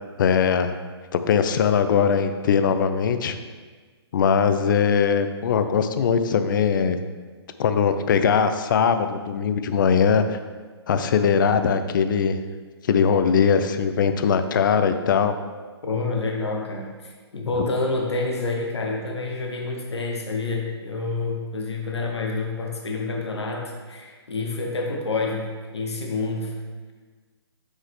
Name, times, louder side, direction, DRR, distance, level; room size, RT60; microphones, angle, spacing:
voice 1, 0.2-0.8 1.1-3.4 4.1-7.0 7.6-10.4 10.9-12.4 12.9-15.3 17.6-17.7, left 6 dB, 50° left, 9 dB, 0.5 m, -20 dB
voice 2, 15.8-26.6, left 3 dB, 75° left, 1 dB, 1.0 m, -28 dB
8.1 x 3.8 x 3.2 m, 1.4 s
figure-of-eight pair, 130°, 14 cm